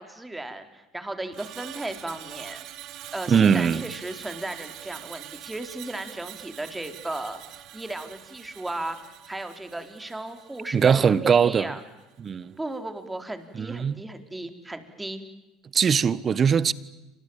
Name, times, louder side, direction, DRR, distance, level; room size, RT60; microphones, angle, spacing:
voice 1, 0.0-2.6 3.1-11.8 12.6-15.2, right 2 dB, 10° right, 4.5 m, -36 dB
Screech, 1.3-11.7 12.0-12.3, right 13 dB, 60° right, 2.1 m, -44 dB
voice 2, 3.3-3.8 10.7-11.7 12.2-12.6 13.5-13.9 15.7-16.7, right 7 dB, 35° right, 1.3 m, -21 dB
29.5 x 27.0 x 7.5 m
hypercardioid pair, 70°, 0 cm